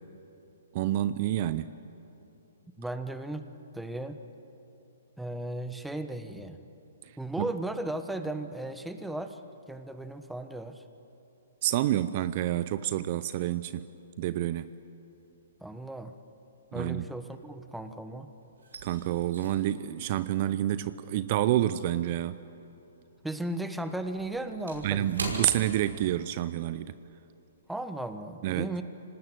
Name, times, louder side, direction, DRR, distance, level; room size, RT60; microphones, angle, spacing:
voice 1, 0.7-1.7 7.4-7.5 11.6-13.8 14.2-14.7 16.7-17.0 18.8-22.4 24.8-26.9 28.4-28.7, right 13 dB, 45° right, 14 dB, 0.6 m, -28 dB
voice 2, 2.8-4.2 5.2-6.6 7.2-9.4 9.7-10.8 15.6-16.1 16.7-18.3 23.2-25.3 27.7-28.8, right 1 dB, 5° right, 9 dB, 1.2 m, -36 dB
sound 1, 15.2-15.7 16.0-18.0 18.2-22.9 23.2-26.5 26.8-27.0 27.5-27.8, right 2 dB, 85° right, 5.8 m, -42 dB
25.0 x 19.0 x 9.3 m, 3.0 s
hypercardioid pair, 130°, 0 cm